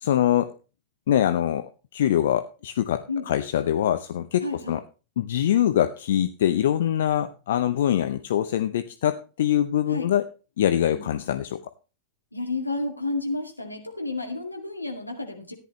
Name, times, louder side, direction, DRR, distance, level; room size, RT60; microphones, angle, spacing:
voice 1, 0.0-0.6 1.1-1.7 1.9-4.8 5.2-10.3 10.6-11.6, left 11 dB, 60° left, 11 dB, 0.7 m, -23 dB
voice 2, 4.4-4.8 9.9-10.1 10.9-11.1 12.3-15.5, left 2 dB, 85° left, 3 dB, 2.2 m, -31 dB
14.0 x 10.5 x 3.1 m, 0.33 s
figure-of-eight pair, 90°, 0 cm